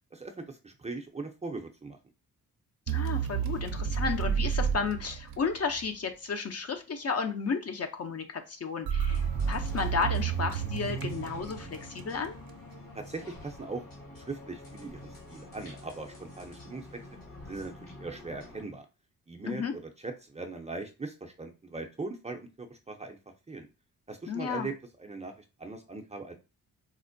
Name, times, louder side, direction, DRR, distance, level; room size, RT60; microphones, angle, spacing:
voice 1, 0.1-2.0 12.9-13.8 14.2-16.9 17.5-18.9 19.3-19.6 20.0-23.2 23.5-23.7 24.1-24.7 25.0-25.3 25.6-26.3, right 3 dB, 20° right, 3 dB, 0.5 m, -40 dB
voice 2, 2.9-12.4 19.5-19.7 24.3-24.7, left 5 dB, 40° left, 6 dB, 0.6 m, -33 dB
sound 1, 2.9-5.9 8.9-12.3, right 8 dB, 70° right, 0.5 m, -31 dB
sound 2, 9.1-18.6, left 1 dB, 65° left, 1.7 m, -48 dB
4.2 x 2.1 x 2.5 m, 0.31 s
cardioid pair, 65°, 37 cm